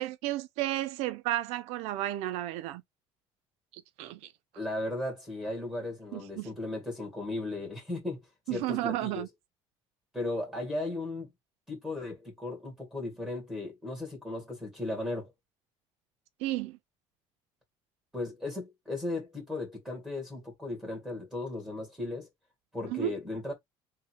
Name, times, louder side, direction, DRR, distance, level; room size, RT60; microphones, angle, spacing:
voice 1, 0.0-2.8 3.7-4.3 6.1-6.5 8.5-9.3 16.4-16.8 22.9-23.1, right 15 dB, 75° right, 0.5 m, -32 dB
voice 2, 4.6-8.2 8.5-9.2 10.1-11.3 11.7-15.3 18.1-22.3 22.7-23.5, left 2 dB, 5° right, 2.0 m, -36 dB
3.7 x 2.7 x 4.5 m
cardioid pair, 180°, 11 cm